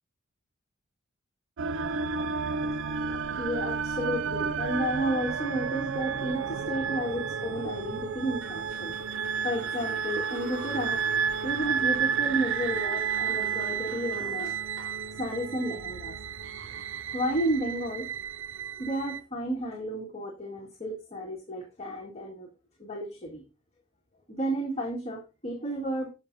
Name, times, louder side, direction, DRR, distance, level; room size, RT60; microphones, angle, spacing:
sound 1, 1.6-19.2, right 6 dB, 65° right, 0.5 m, -31 dB
voice 1, 2.6-9.0 9.4-11.0 11.4-14.6 14.8-16.2 16.7-16.8 17.1-18.1 18.8-22.5 22.8-23.4 24.3-26.1, right 1 dB, 30° left, 1.9 m, -32 dB
sound 2, 8.4-16.6, right 1 dB, 90° right, 4.1 m, -46 dB
16.5 x 5.7 x 2.7 m
head